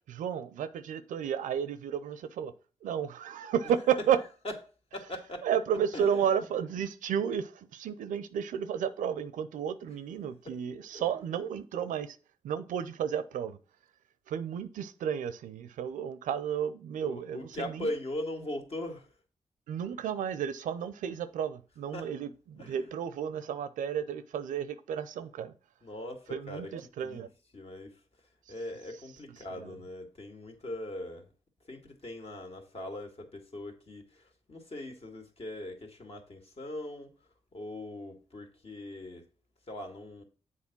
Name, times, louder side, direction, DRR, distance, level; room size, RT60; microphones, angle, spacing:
voice 1, 0.1-2.5 2.8-4.2 5.4-12.2 12.4-13.6 14.3-17.9 19.7-25.5 26.3-27.3 28.5-28.6 29.5-29.8, right 8 dB, 90° right, 0.5 m, -32 dB
voice 2, 4.9-5.5 5.9-6.2 10.5-10.6 10.9-11.0 17.0-19.1 21.9-22.1 22.6-22.8 25.8-26.7 27.0-27.3 27.5-28.0 28.5-31.3 31.7-37.1 37.5-39.2 39.7-40.2, left 1 dB, 50° left, 2.0 m, -40 dB
7.4 x 4.2 x 6.0 m
supercardioid pair, 50°, 13 cm